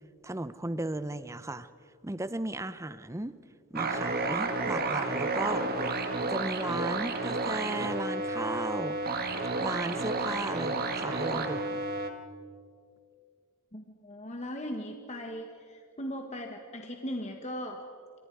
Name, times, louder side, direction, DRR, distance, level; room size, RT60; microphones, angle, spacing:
voice 1, 0.2-1.7 2.0-3.4 3.7-5.7 6.2-9.0 9.6-11.9, right 2 dB, 15° right, 14 dB, 0.7 m, -35 dB
sound 1, 3.8-12.1, right 3 dB, 45° right, 1.7 m, -31 dB
voice 2, 13.7-17.9, equal, 30° left, 3 dB, 1.5 m, -38 dB
27.5 x 26.5 x 4.8 m, 2.2 s
head